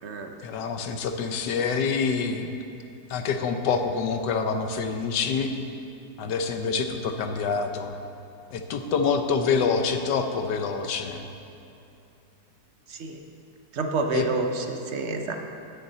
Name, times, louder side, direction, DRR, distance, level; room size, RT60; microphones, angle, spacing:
voice 1, 0.4-2.5 3.1-5.5 6.2-7.9 8.5-11.2 14.1-14.3, left 5 dB, 80° left, 6 dB, 1.4 m, -26 dB
voice 2, 13.7-15.3, right 3 dB, 55° right, 4 dB, 0.9 m, -28 dB
9.5 x 6.9 x 7.8 m, 2.8 s
omnidirectional pair, 1.8 m